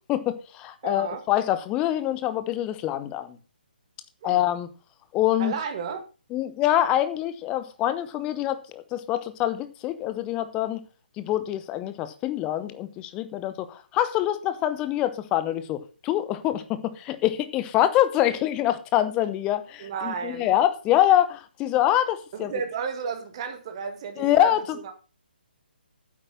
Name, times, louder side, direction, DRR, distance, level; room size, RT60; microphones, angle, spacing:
voice 1, 0.1-3.4 4.2-4.7 5.1-5.5 6.3-10.8 11.2-22.5 24.2-24.6, left 12 dB, 15° left, 0.9 m, -25 dB
voice 2, 0.8-1.2 4.2-4.4 5.4-6.0 19.8-20.5 22.3-24.9, right 6 dB, 30° right, 1.8 m, -33 dB
9.4 x 7.9 x 5.8 m
figure-of-eight pair, 140°, 5 cm